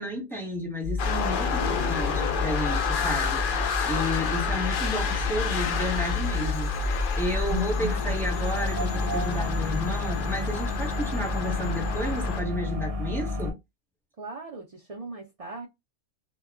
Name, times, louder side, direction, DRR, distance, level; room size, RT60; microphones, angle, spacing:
voice 1, 0.0-13.6, equal, ahead, 0.8 m, -32 dB
sound 1, 0.8-13.5, left 3 dB, 30° right, 0.7 m, -31 dB
sound 2, 1.0-12.4, left 5 dB, 70° left, 0.4 m, -30 dB
voice 2, 14.2-15.7, right 3 dB, 70° right, 0.3 m, -39 dB
2.2 x 2.2 x 3.4 m
omnidirectional pair, 1.4 m